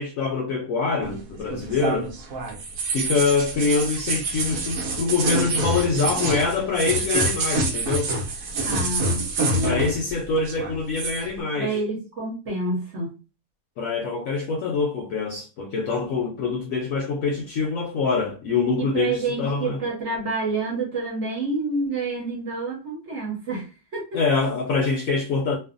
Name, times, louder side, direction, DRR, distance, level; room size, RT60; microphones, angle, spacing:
voice 1, 0.0-2.1 2.9-8.1 9.6-11.8 13.8-19.8 24.1-25.6, left 4 dB, 70° left, 0.9 m, -25 dB
sound 1, 1.0-10.1 10.4-11.2, right 2 dB, 80° right, 1.2 m, -27 dB
voice 2, 8.7-9.9 11.6-13.2 18.8-24.2, right 2 dB, 55° right, 1.0 m, -28 dB
2.6 x 2.4 x 2.4 m
omnidirectional pair, 1.7 m